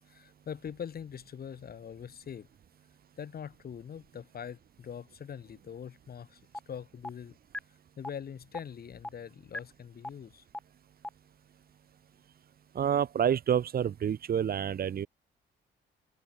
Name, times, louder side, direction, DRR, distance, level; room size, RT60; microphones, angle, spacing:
voice 1, 0.1-2.5 3.2-6.4 6.7-7.4 8.0-10.4, left 8 dB, 50° left, 2.2 m, -43 dB
sound 1, 6.5-6.6 7.0-7.1 7.5-7.6 8.0-8.1 8.5-8.6 9.0-9.1 9.5-9.6 10.0-10.1 10.5-10.6 11.0-11.1, left 1 dB, 5° left, 0.7 m, -36 dB
voice 2, 12.7-15.1, right 9 dB, 50° right, 0.9 m, -28 dB
open air
cardioid pair, 90°, 20 cm